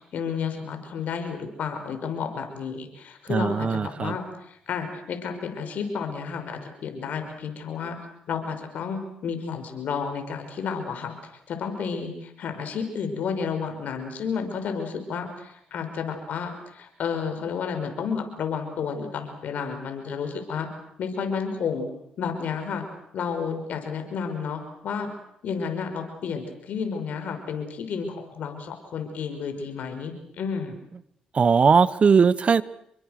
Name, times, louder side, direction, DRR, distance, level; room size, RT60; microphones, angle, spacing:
voice 1, 0.0-8.0 8.3-11.1 11.5-20.7 21.0-21.9 22.2-22.8 23.1-25.1 25.4-30.7, left 6 dB, 70° left, 6 dB, 5.6 m, -31 dB
voice 2, 3.3-4.1 31.3-32.6, right 5 dB, 45° right, 18 dB, 1.0 m, -19 dB
28.5 x 23.0 x 6.7 m, 0.76 s
supercardioid pair, 65°, 3 cm